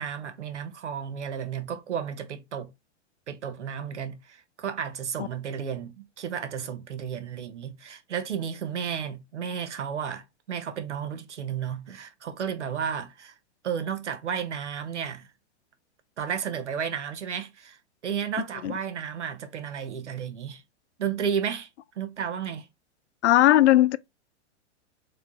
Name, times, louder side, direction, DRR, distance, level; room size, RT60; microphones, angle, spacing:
voice 1, 0.0-2.7 3.3-13.3 13.6-15.3 16.2-20.6 21.0-21.7 22.0-22.7, right 7 dB, 90° right, 1.0 m, -33 dB
voice 2, 23.2-24.0, left 14 dB, 75° left, 0.5 m, -18 dB
4.6 x 3.2 x 2.6 m
hypercardioid pair, 115°, 34 cm